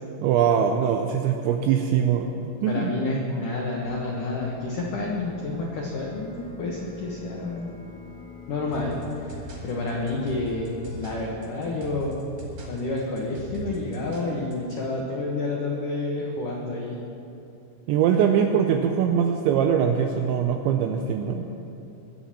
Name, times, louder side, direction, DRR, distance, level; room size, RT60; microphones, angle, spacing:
voice 1, 0.2-2.9 17.9-21.4, right 8 dB, 85° right, 4 dB, 2.6 m, -22 dB
voice 2, 2.7-7.7 8.5-12.2 12.7-17.0, left 2 dB, 90° left, -2 dB, 1.8 m, -29 dB
sound 1, 3.8-11.2, left 1 dB, 30° left, 2.1 m, -46 dB
sound 2, 8.7-14.7, right 3 dB, 45° right, 3.6 m, -40 dB
21.0 x 7.2 x 7.5 m, 2.8 s
omnidirectional pair, 5.9 m